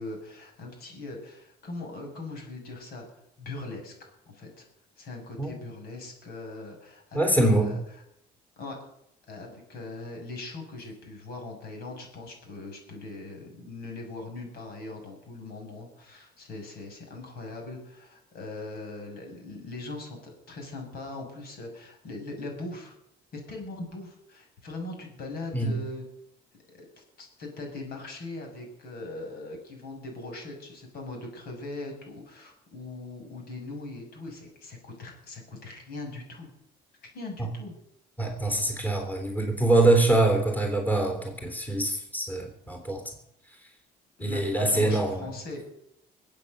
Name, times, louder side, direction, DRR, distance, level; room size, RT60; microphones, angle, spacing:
voice 1, 0.0-3.1 3.4-4.7 5.0-7.8 8.6-8.8 9.3-22.9 23.3-26.1 27.0-36.5 37.0-37.7 44.2-45.6, left 2 dB, 65° left, 2 dB, 6.4 m, -40 dB
voice 2, 7.1-7.7 25.5-25.8 38.2-43.0 44.2-45.2, right 2 dB, 10° left, 3 dB, 3.4 m, -24 dB
22.0 x 8.7 x 6.7 m, 0.77 s
cardioid pair, 110°, 17 cm